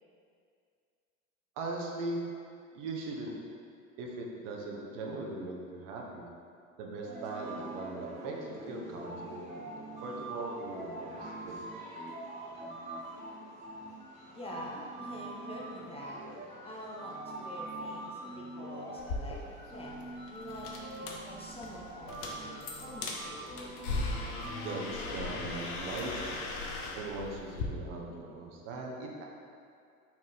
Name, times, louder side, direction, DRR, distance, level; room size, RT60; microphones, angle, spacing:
voice 1, 1.6-2.2 2.7-3.3 4.0-6.2 6.8-11.6 24.5-26.3 27.0-29.2, right 2 dB, 60° right, -1 dB, 0.9 m, -40 dB
sound 1, 7.0-24.9, right 2 dB, 15° right, 1.0 m, -44 dB
voice 2, 14.3-16.2 16.6-19.4 19.7-23.5, equal, 15° left, -4 dB, 0.6 m, -46 dB
sound 2, 19.0-27.7, left 3 dB, 55° left, 0.8 m, -39 dB
4.4 x 2.9 x 4.0 m, 2.3 s
hypercardioid pair, 75°, 42 cm